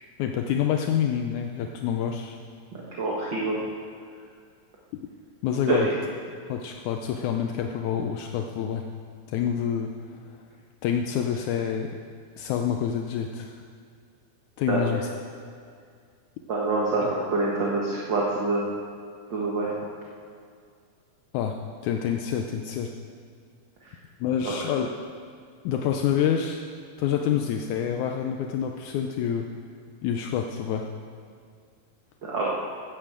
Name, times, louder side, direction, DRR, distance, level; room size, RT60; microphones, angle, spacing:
voice 1, 0.2-2.4 5.4-5.9 6.5-8.8 9.3-9.9 10.8-11.9 12.4-13.5 14.6-15.1 17.0-17.1 21.3-22.9 24.2-24.9 25.6-26.6 27.0-29.5 30.0-30.9, left 8 dB, 80° left, 3 dB, 2.1 m, -27 dB
voice 2, 3.0-3.6 5.7-5.9 14.7-15.0 16.5-18.6 19.3-19.7 32.2-32.5, right 3 dB, 45° right, -4 dB, 1.9 m, -26 dB
12.0 x 10.0 x 7.4 m, 2.2 s
omnidirectional pair, 3.5 m